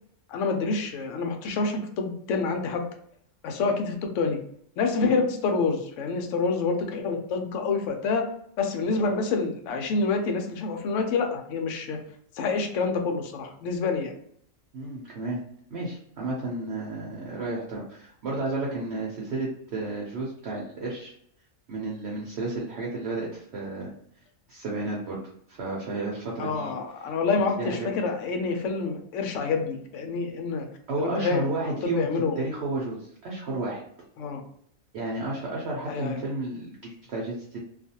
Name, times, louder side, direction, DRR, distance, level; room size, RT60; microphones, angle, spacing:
voice 1, 0.3-2.8 3.4-4.4 4.8-8.3 8.6-12.0 12.3-14.1 26.4-30.7 31.0-32.4 34.2-34.4 35.9-36.2, left 4 dB, 70° left, 4 dB, 0.9 m, -27 dB
voice 2, 14.7-15.4 15.7-21.1 21.7-23.9 24.5-25.2 25.5-26.7 27.6-27.9 30.9-32.1 32.4-33.8 34.9-37.6, right 2 dB, 60° right, -3 dB, 0.9 m, -32 dB
2.4 x 2.4 x 2.7 m, 0.65 s
omnidirectional pair, 1.4 m